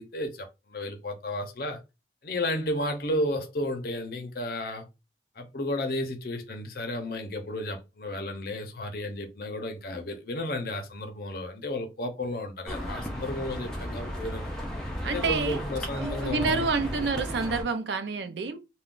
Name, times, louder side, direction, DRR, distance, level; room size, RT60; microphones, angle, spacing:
voice 1, 0.0-1.8 2.2-4.9 5.4-14.5 15.0-16.7 16.9-17.1, left 1 dB, 55° left, 0.6 m, -33 dB
sound 1, 12.7-17.6, equal, 5° left, 0.5 m, -34 dB
voice 2, 15.0-15.6 16.0-18.6, right 4 dB, 75° right, 0.5 m, -28 dB
2.4 x 2.2 x 3.6 m
head